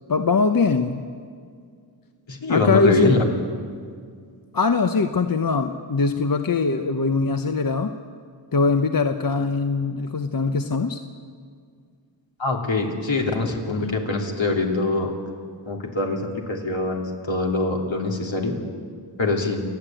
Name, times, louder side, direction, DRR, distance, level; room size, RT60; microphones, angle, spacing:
voice 1, 0.1-1.0 2.5-3.2 4.5-7.9 8.5-11.0, left 4 dB, 45° left, 7 dB, 0.9 m, -22 dB
voice 2, 2.3-3.3 12.4-15.1 15.7-16.2 16.5-18.6 19.2-19.6, left 3 dB, 70° left, 1 dB, 3.2 m, -23 dB
28.5 x 10.0 x 9.0 m, 2.1 s
wide cardioid pair, 60°, 47 cm